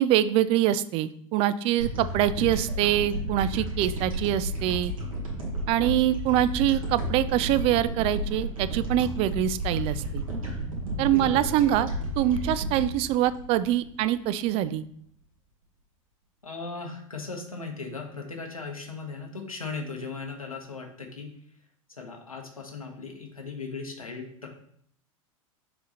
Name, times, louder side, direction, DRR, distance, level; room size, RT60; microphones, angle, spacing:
voice 1, 0.0-4.9 5.7-10.2 11.0-11.9 12.2-14.8, right 12 dB, 35° right, 15 dB, 0.4 m, -24 dB
sound 1, 1.8-14.3, right 1 dB, 75° right, 1.8 m, -32 dB
voice 2, 11.2-11.6 16.4-21.3 22.0-24.5, left 4 dB, 85° left, 1 dB, 1.4 m, -37 dB
6.6 x 3.6 x 4.2 m, 0.64 s
figure-of-eight pair, 85°, 18 cm